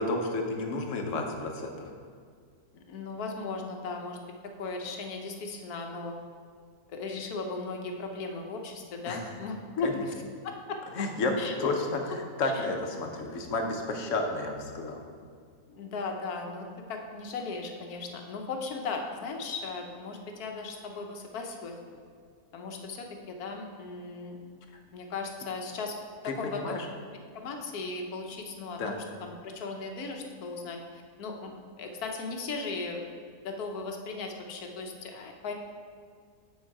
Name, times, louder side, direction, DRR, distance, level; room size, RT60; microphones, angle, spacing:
voice 1, 0.0-1.9 9.1-9.2 9.8-9.9 11.0-11.3 11.6-15.0 26.2-26.9 28.7-29.0, left 2 dB, 60° left, 3 dB, 1.2 m, -31 dB
voice 2, 2.7-6.2 6.9-9.9 10.4-10.8 11.4-11.5 12.4-12.7 15.7-22.0 22.5-24.4 24.9-26.0 26.2-26.8 27.3-31.5 31.8-33.1 33.4-35.5, left 3 dB, 80° left, 3 dB, 1.4 m, -37 dB
7.4 x 6.4 x 4.7 m, 2.1 s
omnidirectional pair, 1.6 m